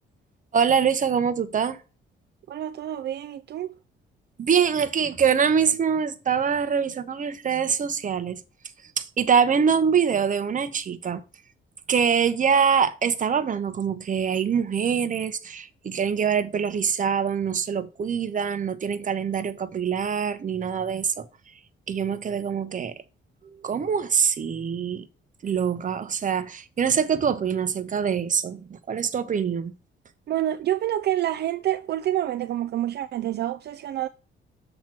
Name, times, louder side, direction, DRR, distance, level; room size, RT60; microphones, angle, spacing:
voice 1, 0.5-1.8 4.4-8.4 9.0-11.2 11.9-21.2 21.9-22.9 23.6-25.1 25.4-29.7, right 7 dB, 40° right, 0.8 m, -24 dB
voice 2, 2.5-3.8 30.3-34.1, right 12 dB, 55° right, 0.4 m, -27 dB
7.4 x 3.0 x 5.9 m
cardioid pair, 90°, 20 cm